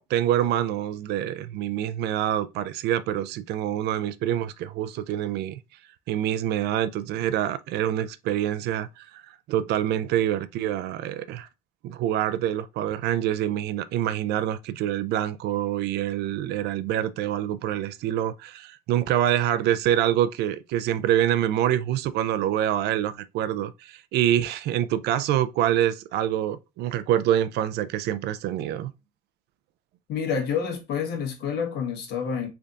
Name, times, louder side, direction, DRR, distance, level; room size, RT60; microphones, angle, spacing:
voice 1, 0.0-5.6 6.1-11.5 11.8-28.9, right 11 dB, 80° right, 0.4 m, -26 dB
voice 2, 30.1-32.5, left 6 dB, 80° left, 1.3 m, -28 dB
3.8 x 3.4 x 2.4 m
cardioid pair, 110°, 17 cm